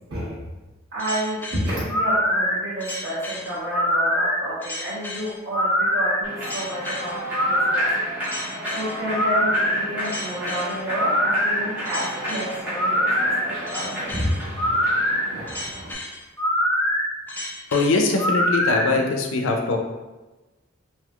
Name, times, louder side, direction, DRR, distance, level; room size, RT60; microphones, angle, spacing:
voice 1, 0.9-7.2 7.5-7.9 8.7-14.7 15.3-15.5, equal, 60° right, -14 dB, 1.1 m, -30 dB
sound 1, 1.0-18.9, equal, 10° left, 0.3 m, -24 dB
Human voice / Clapping / Cheering, 6.2-15.9, equal, 10° right, 0.9 m, -32 dB
voice 2, 17.7-19.8, left 3 dB, 75° left, 3 dB, 0.5 m, -21 dB
3.4 x 2.7 x 2.3 m, 1.1 s
head